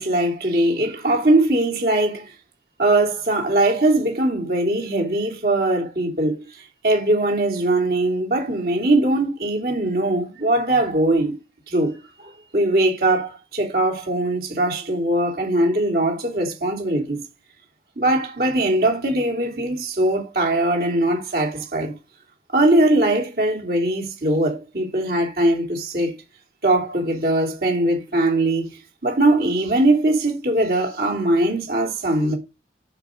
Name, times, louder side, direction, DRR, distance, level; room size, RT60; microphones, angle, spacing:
voice 1, 0.0-2.3 2.8-6.4 6.8-11.3 11.7-17.2 18.0-21.9 22.5-26.1 26.6-28.7 29.0-32.3, right 1 dB, 55° right, 3.4 m, -21 dB
10.5 x 5.2 x 6.7 m
head